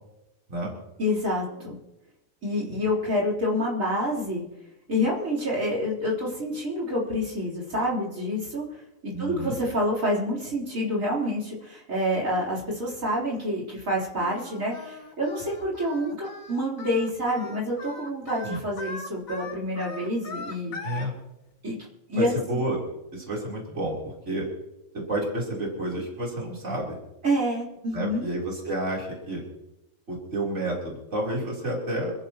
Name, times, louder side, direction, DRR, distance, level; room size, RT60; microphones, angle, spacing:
voice 1, 1.0-1.7 2.4-4.4 4.9-8.8 9.2-20.8 21.6-21.8 22.1-22.3 27.2-28.2, equal, 75° right, -5 dB, 4.2 m, -27 dB
voice 2, 9.1-9.5 18.4-18.6 20.8-21.1 22.2-22.8 23.1-24.5 24.9-27.0 27.9-29.4 30.1-32.1, right 1 dB, 60° right, -3 dB, 4.0 m, -30 dB
Singing, 14.2-21.1, left 3 dB, 85° left, 2.2 m, -40 dB
27.5 x 14.0 x 3.0 m, 0.96 s
omnidirectional pair, 1.4 m